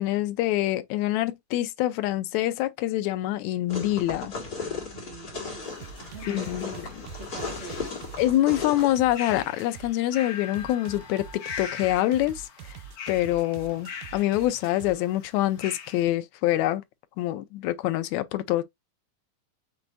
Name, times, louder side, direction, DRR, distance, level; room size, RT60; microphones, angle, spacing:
voice 1, 0.0-4.3 6.3-7.0 8.2-12.7 13.1-16.8 17.2-18.6, left 14 dB, 80° left, 1.9 m, -26 dB
sound 1, 3.7-9.0, left 4 dB, 35° left, 2.4 m, -36 dB
voice 2, 4.9-7.9, right 4 dB, 30° right, 1.8 m, -44 dB
sound 2, 5.6-16.0, left 7 dB, 60° left, 1.5 m, -42 dB
sound 3, 5.8-9.9 10.5-15.0, right 9 dB, 80° right, 2.0 m, -45 dB
6.1 x 3.3 x 2.5 m
omnidirectional pair, 3.4 m